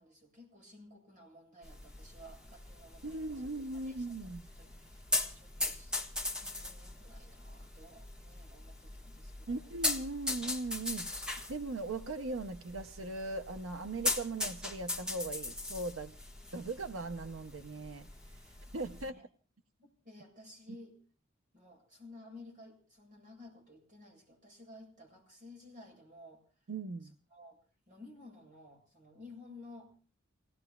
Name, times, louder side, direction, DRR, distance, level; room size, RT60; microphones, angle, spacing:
voice 1, 0.0-3.5 3.7-4.2 4.5-6.0 6.4-9.7 19.0-19.2 19.8-21.0 21.5-26.4 27.3-27.6 27.9-29.9, left 2 dB, 40° right, 1 dB, 7.5 m, -55 dB
sound 1, 1.6-19.1, left 2 dB, 5° right, 1.4 m, -40 dB
voice 2, 3.0-4.4 9.5-16.1 16.5-18.1 18.3-18.4 18.7-19.2 26.7-27.1, right 2 dB, 85° right, 8 dB, 0.7 m, -39 dB
29.5 x 18.0 x 2.3 m, 0.38 s
head